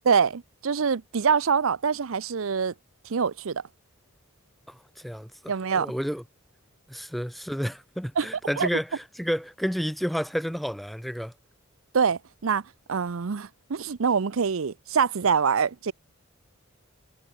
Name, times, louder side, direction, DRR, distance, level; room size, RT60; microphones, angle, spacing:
voice 1, 0.1-2.7 3.0-3.6 5.5-5.9 8.2-8.3 8.6-8.7 11.9-12.6 12.9-15.9, right 6 dB, 65° right, 0.6 m, -25 dB
voice 2, 4.7-5.3 5.7-6.2 6.9-11.3, equal, ahead, 1.2 m, -30 dB
head